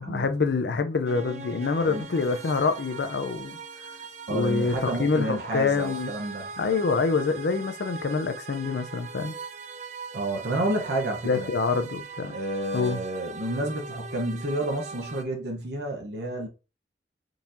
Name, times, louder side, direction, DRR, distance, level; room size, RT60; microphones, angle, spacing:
voice 1, 0.0-3.6 4.3-6.1 6.6-9.3 11.2-12.4 12.7-13.0, left 4 dB, 70° left, 0.5 m, -26 dB
sound 1, 1.0-15.2, right 4 dB, 40° right, 0.4 m, -41 dB
voice 2, 4.3-6.5 10.1-11.5 12.3-16.5, right 1 dB, 65° right, 0.8 m, -30 dB
3.8 x 2.9 x 2.6 m
head